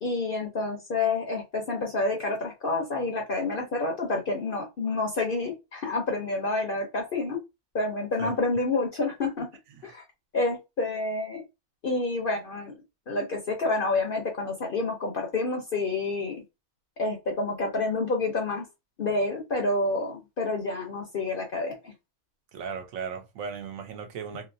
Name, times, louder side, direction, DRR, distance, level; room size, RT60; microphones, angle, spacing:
voice 1, 0.0-7.4 7.7-9.5 9.8-10.0 10.3-11.4 11.8-12.8 13.1-16.4 17.0-18.6 19.0-21.9, left 3 dB, 50° left, 0.7 m, -28 dB
voice 2, 22.5-24.5, right 6 dB, 70° right, 1.0 m, -36 dB
3.0 x 2.8 x 2.6 m
omnidirectional pair, 1.5 m